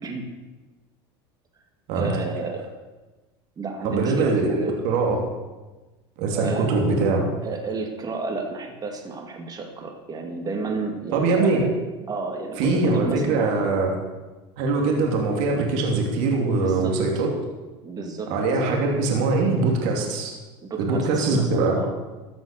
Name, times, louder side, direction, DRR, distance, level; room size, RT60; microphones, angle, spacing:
voice 1, 1.9-2.7 3.6-4.7 6.3-6.9 7.4-11.7 12.1-13.8 16.5-17.2 17.8-18.3 20.6-21.9, right 4 dB, 30° right, 3 dB, 2.4 m, -32 dB
voice 2, 3.8-5.2 6.2-7.3 11.1-11.6 12.6-13.9 14.6-17.3 18.3-20.3 20.8-21.8, right 3 dB, 70° right, 0 dB, 2.8 m, -22 dB
14.0 x 6.2 x 6.6 m, 1.2 s
supercardioid pair, 100°, 13 cm